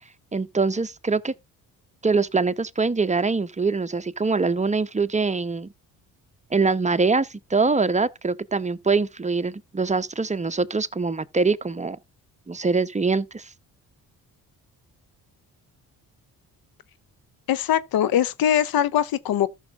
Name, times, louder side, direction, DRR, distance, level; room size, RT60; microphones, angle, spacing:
voice 1, 0.3-1.3 2.0-5.7 6.5-12.0 12.5-13.5, right 4 dB, 20° right, 0.8 m, -23 dB
voice 2, 17.5-19.5, left 10 dB, 65° left, 0.8 m, -22 dB
14.0 x 6.3 x 2.5 m
supercardioid pair, 60°, 39 cm